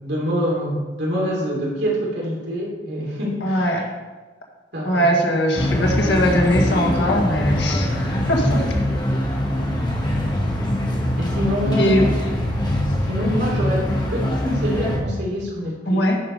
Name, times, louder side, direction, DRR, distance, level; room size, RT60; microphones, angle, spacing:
voice 1, 0.0-3.8 4.7-5.1 5.8-6.1 11.2-12.1 13.0-13.8 14.1-16.1, equal, 70° right, -4 dB, 3.1 m, -26 dB
voice 2, 3.4-3.8 4.8-8.6 11.8-12.1 15.9-16.2, equal, 85° left, 0 dB, 1.8 m, -20 dB
sound 1, 5.6-15.0, left 1 dB, 25° left, 1.5 m, -22 dB
10.5 x 5.0 x 5.4 m, 1.2 s
head